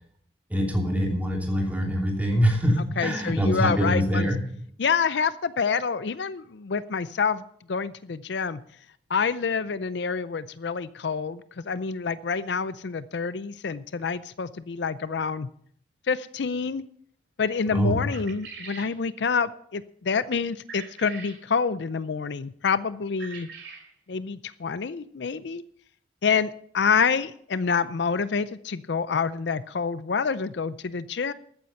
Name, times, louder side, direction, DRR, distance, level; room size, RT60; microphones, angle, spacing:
voice 1, 0.5-4.4 17.7-17.9, equal, 10° right, 0 dB, 3.0 m, -24 dB
voice 2, 3.0-4.3 4.8-8.6 9.1-15.5 16.1-16.8 17.4-23.5 24.1-25.6 26.2-31.3, left 5 dB, 70° left, 15 dB, 0.5 m, -27 dB
sound 1, 18.1-18.9 20.7-21.4 23.2-23.9, right 5 dB, 70° right, 3.0 m, -42 dB
14.0 x 9.5 x 5.8 m, 0.63 s
head